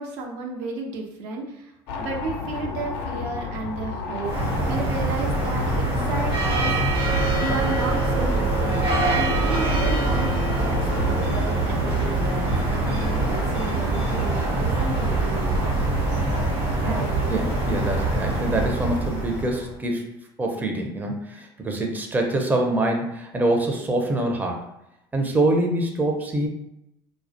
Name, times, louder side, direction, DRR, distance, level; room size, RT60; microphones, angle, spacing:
voice 1, 0.0-15.7 16.8-17.1, right 3 dB, 70° right, 0 dB, 0.5 m, -33 dB
sound 1, 1.9-11.4, left 5 dB, 75° left, 0.4 m, -32 dB
sound 2, 4.2-19.7, right 2 dB, 85° right, 1.0 m, -24 dB
voice 2, 16.8-20.1 20.4-24.7 25.1-26.5, right 1 dB, 15° right, 2 dB, 0.5 m, -25 dB
2.3 x 2.1 x 2.6 m, 0.84 s
hypercardioid pair, 75°, 12 cm